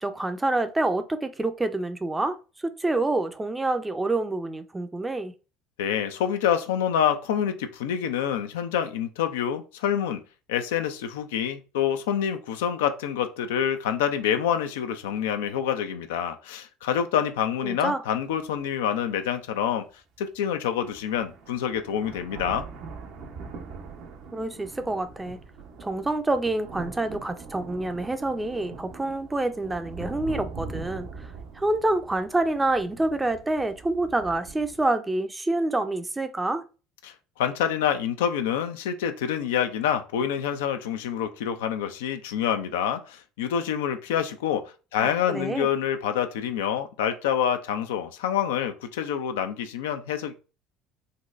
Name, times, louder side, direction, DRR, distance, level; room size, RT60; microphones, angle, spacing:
voice 1, 0.0-2.4 2.6-5.3 17.6-18.0 24.3-25.4 25.8-31.1 31.6-36.6 45.0-45.7, right 2 dB, 15° right, 0.5 m, -27 dB
voice 2, 5.8-10.2 10.5-19.9 20.2-22.7 37.0-50.3, left 9 dB, 80° left, 0.4 m, -27 dB
sound 1, 18.3-18.4 19.0-19.1 20.4-20.5 20.8-34.8, right 4 dB, 60° right, 0.7 m, -42 dB
3.9 x 2.1 x 2.4 m
hypercardioid pair, 70°, 0 cm